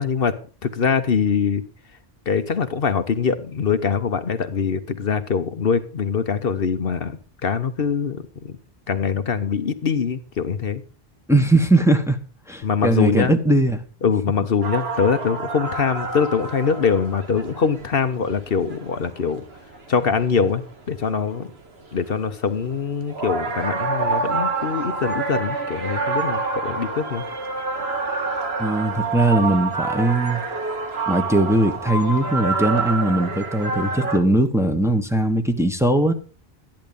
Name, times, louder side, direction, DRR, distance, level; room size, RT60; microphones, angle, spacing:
voice 1, 0.0-1.6 2.3-8.6 8.9-10.8 12.6-13.3 14.0-19.4 19.9-21.5 21.9-27.2, left 6 dB, 65° left, 1.2 m, -23 dB
voice 2, 11.3-12.2 12.5-13.8 28.6-30.4 31.1-36.1, right 1 dB, 5° right, 1.4 m, -20 dB
sound 1, 14.6-21.3 21.8-22.2 22.5-34.2, right 4 dB, 80° right, 2.0 m, -27 dB
13.5 x 10.5 x 5.3 m
omnidirectional pair, 1.1 m